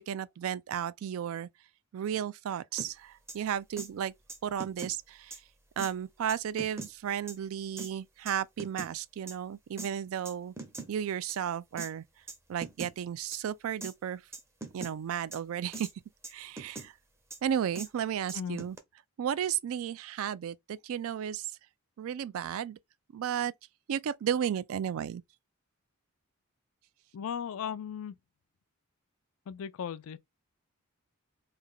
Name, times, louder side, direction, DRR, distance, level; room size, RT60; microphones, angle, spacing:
voice 1, 0.0-1.5 1.9-4.1 4.4-5.4 5.8-10.5 10.9-12.0 12.5-14.2 14.7-15.9 16.3-16.9 17.4-18.8 19.2-21.5 22.0-22.8 23.1-23.5 23.9-25.2, right 9 dB, 65° right, 0.3 m, -33 dB
sound 1, 2.8-2.9 3.3-3.4 3.8-3.9 4.3-4.9 5.3-5.4 5.8-5.9 6.3-6.9 7.3-7.4 7.8-7.9 8.3-8.9 9.3-9.4 9.8-9.9 10.2-10.9 11.3-11.4 11.8-11.9 12.3-12.4 12.6-12.9 13.3-13.4 13.8-13.9 14.3-14.9 15.3-15.4 15.7-15.9 16.2-16.9 17.3-17.4 17.7-17.9 18.3-18.8, right 2 dB, 10° right, 0.5 m, -41 dB
voice 2, 27.1-28.1 29.5-30.2, left 8 dB, 65° left, 0.3 m, -36 dB
3.2 x 2.3 x 3.7 m
head